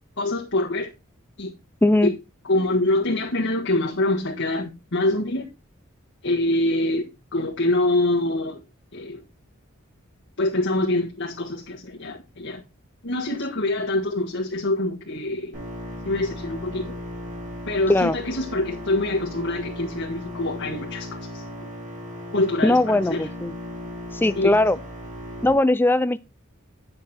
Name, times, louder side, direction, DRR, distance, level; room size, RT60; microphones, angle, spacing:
voice 1, 0.2-0.9 1.4-1.5 2.0-2.1 2.4-5.5 6.2-7.0 7.3-8.6 8.9-9.2 10.4-12.6 13.0-15.6 16.0-17.0 17.7-21.4 22.3-23.3 24.3-24.5, left 2 dB, 60° left, 1.6 m, -25 dB
voice 2, 1.8-2.1 17.9-18.2 22.6-23.5 24.1-24.8 25.4-26.2, left 1 dB, 10° left, 0.4 m, -19 dB
sound 1, 15.5-25.5, left 1 dB, 40° right, 6.4 m, -36 dB
9.9 x 6.3 x 4.3 m
head